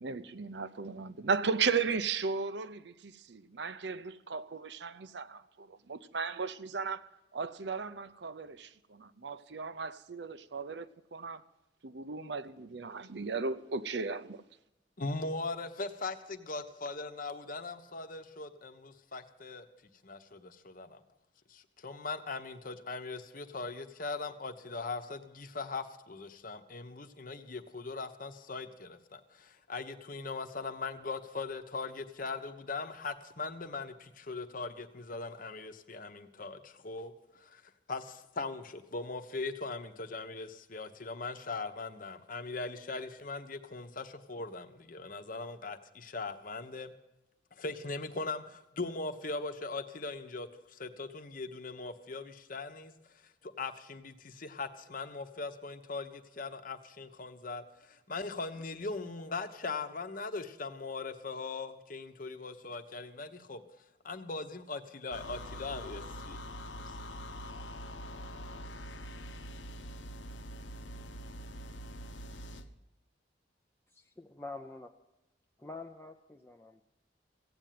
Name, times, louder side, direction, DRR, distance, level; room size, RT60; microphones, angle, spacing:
voice 1, 0.0-8.6 9.2-11.4 11.8-14.4, right 5 dB, 65° right, 0.7 m, -35 dB
voice 2, 15.0-19.7 20.0-21.0 21.5-37.6 37.9-46.9 47.6-52.9 53.4-63.6 64.0-66.4, left 3 dB, 50° left, 1.0 m, -40 dB
sound 1, 65.1-72.7, equal, 85° left, 1.0 m, -44 dB
voice 3, 73.9-74.9 75.6-76.8, left 3 dB, 15° left, 0.6 m, -46 dB
16.0 x 8.9 x 9.3 m
head